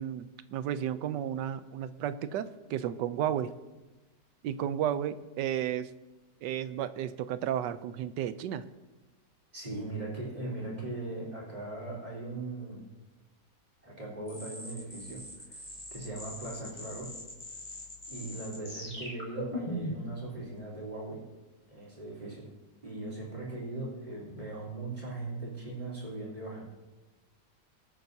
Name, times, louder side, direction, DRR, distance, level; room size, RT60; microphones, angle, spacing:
voice 1, 0.0-3.5 4.4-5.9 6.4-8.6, right 10 dB, 85° right, 13 dB, 1.3 m, -33 dB
voice 2, 9.5-12.8 13.8-15.6 15.9-17.1 18.1-21.2 21.7-22.5 22.8-26.6, right 2 dB, 25° right, -4 dB, 3.8 m, -39 dB
sound 1, 14.3-20.1, left 1 dB, 30° left, 3.4 m, -41 dB
22.5 x 8.8 x 2.7 m, 1.1 s
omnidirectional pair, 1.9 m